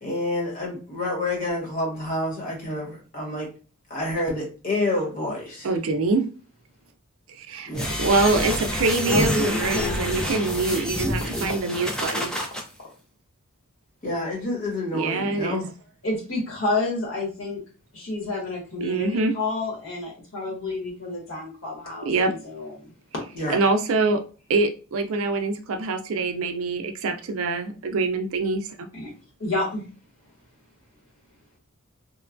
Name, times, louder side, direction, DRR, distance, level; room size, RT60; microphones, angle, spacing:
voice 1, 0.0-3.5 3.9-5.7 7.7-7.9 14.0-15.7 23.3-23.6, left 1 dB, 40° left, 1.2 m, -28 dB
voice 2, 5.6-6.3 7.4-7.7 8.0-12.3 14.9-15.6 18.8-19.3 22.0-22.3 23.5-24.2 24.5-28.9, right 3 dB, 70° right, 0.4 m, -24 dB
sound 1, 7.7-12.6, equal, 5° left, 0.4 m, -28 dB
voice 3, 9.1-10.2 16.0-17.6 17.9-22.9 28.9-29.1 29.4-29.8, left 2 dB, 65° left, 1.4 m, -29 dB
3.0 x 2.2 x 2.4 m
head